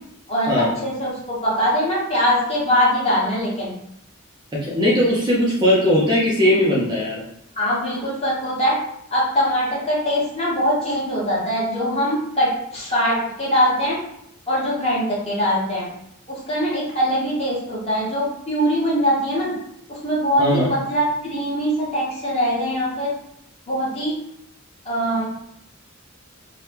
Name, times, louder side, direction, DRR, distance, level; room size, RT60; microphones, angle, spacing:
voice 1, 0.3-3.7 7.6-8.7 9.1-14.0 14.5-15.9 16.5-19.5 20.0-23.1 23.7-24.2 24.9-25.3, equal, 30° left, -7 dB, 1.1 m, -22 dB
voice 2, 4.5-7.2 20.4-20.7, left 1 dB, 20° right, -6 dB, 0.5 m, -19 dB
2.8 x 2.3 x 3.3 m, 0.76 s
head